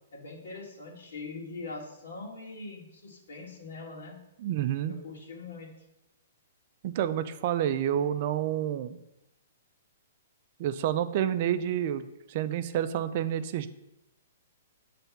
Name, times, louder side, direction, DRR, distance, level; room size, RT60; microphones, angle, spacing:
voice 1, 0.1-4.2 4.9-5.7, left 3 dB, 80° left, -1 dB, 1.7 m, -42 dB
voice 2, 4.4-4.9 6.8-9.0 10.6-13.7, right 10 dB, 40° right, 12 dB, 0.4 m, -29 dB
6.9 x 3.4 x 5.8 m, 0.89 s
hypercardioid pair, 160°, 0 cm